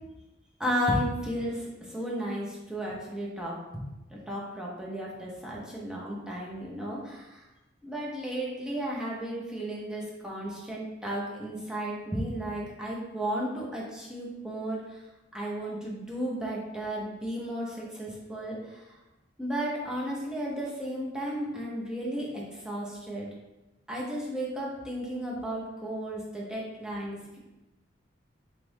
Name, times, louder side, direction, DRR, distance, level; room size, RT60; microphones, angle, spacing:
voice 1, 0.6-3.8 4.1-7.4 7.8-14.8 15.3-18.8 19.4-23.3 23.9-27.4, equal, 5° right, -5 dB, 0.6 m, -34 dB
3.0 x 2.4 x 3.2 m, 1.0 s
head